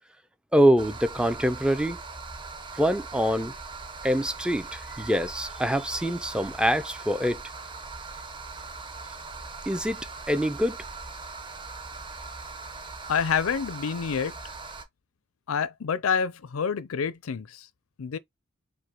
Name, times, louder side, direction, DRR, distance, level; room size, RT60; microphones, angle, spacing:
voice 1, 0.5-2.0 2.7-3.5 4.0-7.4 9.7-10.0 10.3-10.8, equal, 5° right, 0.4 m, -24 dB
sound 1, 0.8-14.8, right 4 dB, 25° right, 0.8 m, -40 dB
voice 2, 13.1-14.3 15.5-17.7 18.0-18.2, left 6 dB, 75° left, 0.5 m, -27 dB
4.9 x 2.1 x 4.4 m
head